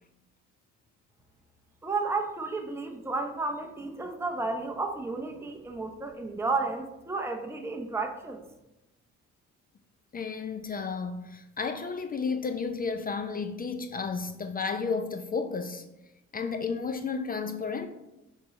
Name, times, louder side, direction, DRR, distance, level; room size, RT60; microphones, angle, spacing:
voice 1, 1.8-8.4, right 3 dB, 10° right, 0.7 m, -32 dB
voice 2, 10.1-15.8 16.3-17.9, left 5 dB, 30° left, 0.4 m, -32 dB
6.4 x 3.2 x 4.7 m
cardioid pair, 90°, 30 cm